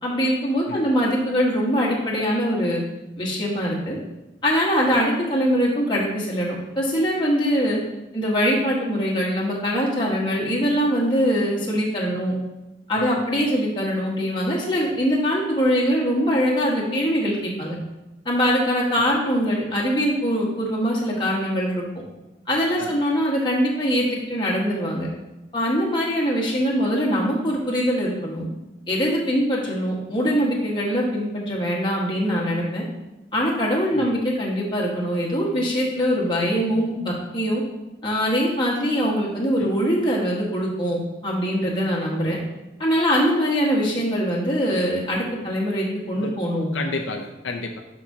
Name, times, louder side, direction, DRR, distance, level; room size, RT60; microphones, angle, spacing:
voice 1, 0.0-2.8 3.2-4.0 4.4-7.8 8.1-12.3 12.9-17.7 18.2-21.9 22.5-25.1 25.5-28.5 28.9-32.8 33.3-37.6 38.0-42.4 42.8-46.7, equal, 25° left, -4 dB, 1.5 m, -22 dB
voice 2, 46.7-47.8, left 3 dB, 85° left, 3 dB, 0.6 m, -32 dB
11.5 x 4.9 x 2.8 m, 0.98 s
head